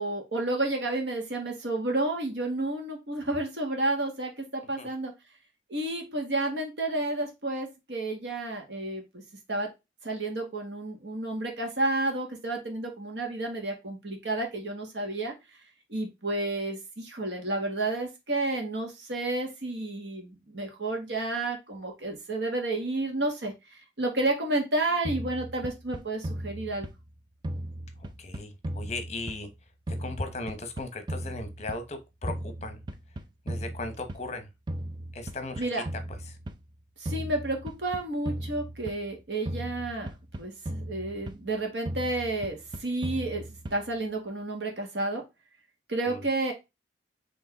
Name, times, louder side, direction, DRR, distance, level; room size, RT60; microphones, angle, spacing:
voice 1, 0.0-5.1 5.7-9.2 9.5-9.7 10.0-15.3 15.9-26.9 35.6-35.8 37.0-40.1 40.4-45.2 45.9-46.5, right 2 dB, 75° right, 1.6 m, -31 dB
sound 1, 25.0-27.1 27.4-29.6 29.9-32.0 32.3-34.4 34.7-36.6 37.0-39.2 39.4-41.5 41.8-44.0, right 1 dB, 25° right, 0.4 m, -37 dB
voice 2, 28.2-29.5 30.0-32.8 33.5-34.5 35.1-35.7 36.3-36.4 46.1-46.2, left 2 dB, 40° left, 0.8 m, -37 dB
4.9 x 3.2 x 3.4 m
head